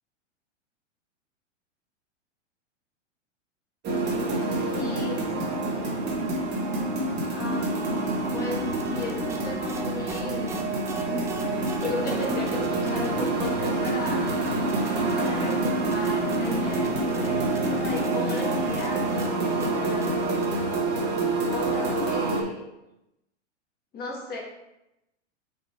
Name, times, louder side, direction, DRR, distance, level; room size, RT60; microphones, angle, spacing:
sound 1, 3.8-22.4, right 2 dB, 30° right, 1.3 m, -27 dB
voice 1, 4.7-6.0 7.3-10.6 11.1-14.3 15.1-20.1 21.5-22.6 23.9-24.4, left 3 dB, 25° left, -1 dB, 1.7 m, -36 dB
sound 2, 7.5-20.6, right 1 dB, 10° right, 0.3 m, -41 dB
6.2 x 4.5 x 3.4 m, 0.91 s
hypercardioid pair, 115°, 36 cm